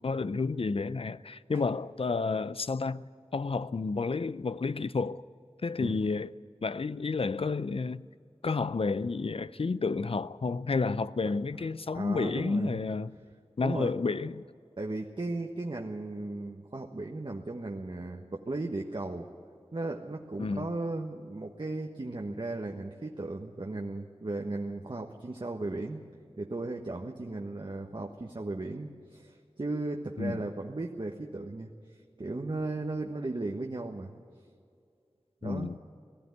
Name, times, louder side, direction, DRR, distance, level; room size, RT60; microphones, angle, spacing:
voice 1, 0.0-3.0 3.3-5.2 5.6-6.3 6.6-8.0 8.4-13.1 13.6-14.4 20.4-20.7 30.2-30.4 35.4-35.8, left 4 dB, 65° left, 0.5 m, -30 dB
voice 2, 11.9-12.8 13.6-13.9 14.8-19.3 19.7-26.0 26.4-34.1 35.4-35.7, right 2 dB, 50° right, 1.2 m, -36 dB
19.5 x 14.0 x 9.6 m
wide cardioid pair, 60°, 10 cm